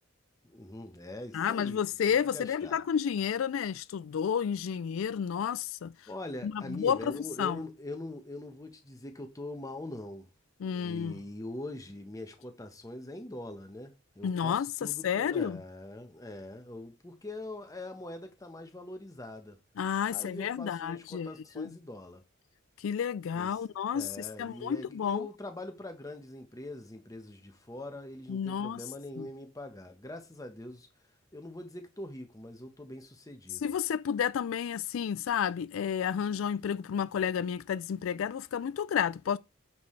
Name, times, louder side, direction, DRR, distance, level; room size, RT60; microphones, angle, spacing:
voice 1, 0.5-1.8 2.1-2.8 6.1-10.3 10.6-19.6 20.1-22.2 23.3-23.6 23.9-30.9 31.3-33.6, left 1 dB, 15° left, 1.2 m, -43 dB
voice 2, 1.3-5.9 6.4-7.6 10.6-11.2 14.2-15.6 19.8-21.3 21.6-21.7 22.8-25.3 28.3-28.8 29.2-29.3 33.6-39.4, left 8 dB, 85° left, 0.3 m, -31 dB
9.4 x 6.2 x 3.3 m
head